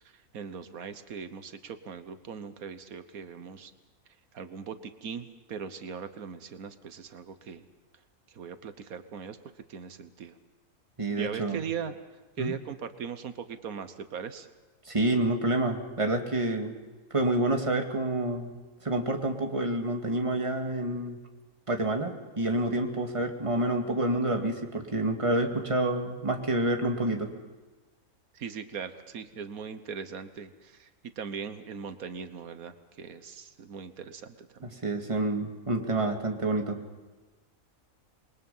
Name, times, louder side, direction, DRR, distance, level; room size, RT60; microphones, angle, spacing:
voice 1, 0.1-3.7 4.3-7.7 8.3-9.4 9.7-10.4 11.2-11.9 12.4-14.5 28.3-34.7, right 6 dB, 90° right, 10 dB, 1.6 m, -40 dB
voice 2, 11.0-11.6 12.4-12.5 14.9-16.8 17.1-18.5 18.8-21.2 21.7-27.3 34.6-36.8, right 2 dB, 20° right, 3 dB, 2.1 m, -28 dB
27.5 x 21.5 x 5.6 m, 1.3 s
omnidirectional pair, 1.5 m